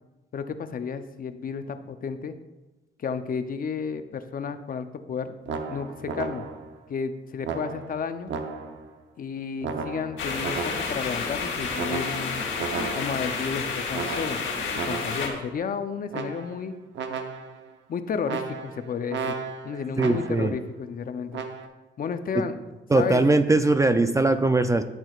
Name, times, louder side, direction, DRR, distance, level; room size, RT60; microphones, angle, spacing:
voice 1, 0.3-2.3 3.0-5.3 5.7-6.5 6.9-8.3 9.2-12.4 12.9-14.4 14.8-16.7 17.9-19.3 19.6-21.4 22.0-22.6 22.9-23.2, left 6 dB, 45° left, 9 dB, 0.6 m, -32 dB
sound 1, 5.5-6.8 7.4-8.9 9.6-11.1 11.8-13.4 13.9-15.4 16.1-16.7 16.9-17.7 18.2-20.6 21.3-21.7, right 5 dB, 65° right, 0.9 m, -34 dB
sound 2, 10.2-15.3, left 4 dB, 85° left, 2.4 m, -30 dB
voice 2, 20.0-20.5 22.3-22.4 22.9-24.8, right 2 dB, 15° right, 9 dB, 0.4 m, -21 dB
13.0 x 6.2 x 2.4 m, 1.1 s
cardioid pair, 90°, 20 cm